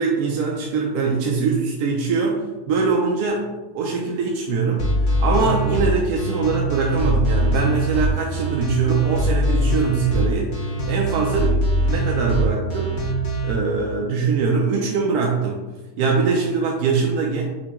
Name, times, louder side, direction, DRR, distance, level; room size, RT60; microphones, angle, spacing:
voice 1, 0.0-3.5 3.7-11.6 11.8-13.1 13.4-15.6 16.0-17.4, right 4 dB, 75° right, -1 dB, 1.0 m, -22 dB
sound 1, 4.8-13.5, right 1 dB, 85° left, 0.4 m, -22 dB
5.7 x 2.0 x 3.5 m, 1.1 s
omnidirectional pair, 1.8 m